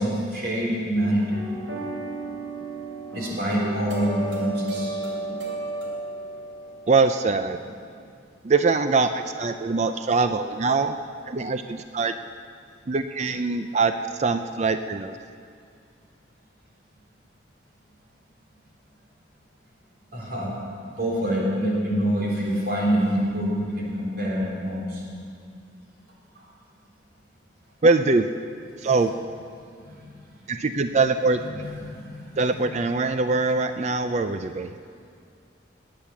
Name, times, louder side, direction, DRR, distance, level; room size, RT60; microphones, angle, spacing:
voice 1, 0.0-1.4 3.1-5.0 20.1-20.7 20.9-25.0 26.4-26.5 29.8-30.0 31.4-32.4, equal, 55° right, -3 dB, 3.8 m, -26 dB
sound 1, 1.3-7.3, right 2 dB, 85° right, 2.9 m, -34 dB
voice 2, 6.9-7.6 8.4-10.9 11.3-12.1 12.9-15.2 27.8-28.3 28.8-29.1 30.5-31.4 32.4-34.7, right 3 dB, 35° right, 9 dB, 0.4 m, -23 dB
19.5 x 8.7 x 7.2 m, 2.3 s
head